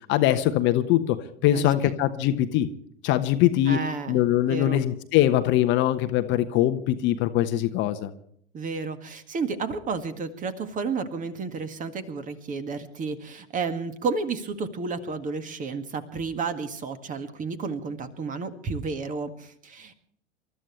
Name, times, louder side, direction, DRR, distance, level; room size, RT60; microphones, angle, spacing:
voice 1, 0.1-1.2 1.4-2.7 3.0-3.8 4.1-8.1, left 13 dB, 30° left, 10 dB, 1.1 m, -22 dB
voice 2, 1.5-1.9 3.7-4.2 4.5-4.8 8.5-19.9, right 4 dB, 20° right, 10 dB, 1.9 m, -31 dB
28.0 x 14.0 x 3.2 m, 0.66 s
figure-of-eight pair, 95°, 36 cm